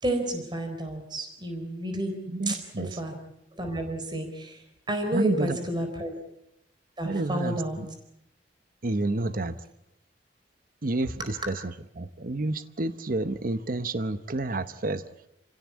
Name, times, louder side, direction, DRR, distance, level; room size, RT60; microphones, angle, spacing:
voice 1, 0.0-2.2 2.5-3.1 3.5-6.1 7.0-7.8, right 1 dB, 25° right, 6 dB, 4.1 m, -31 dB
voice 2, 2.3-3.0 5.1-5.6 7.0-7.9 8.8-9.6 10.8-11.6 11.9-15.0, right 2 dB, 50° right, 12 dB, 0.9 m, -29 dB
29.0 x 16.5 x 8.4 m, 0.83 s
head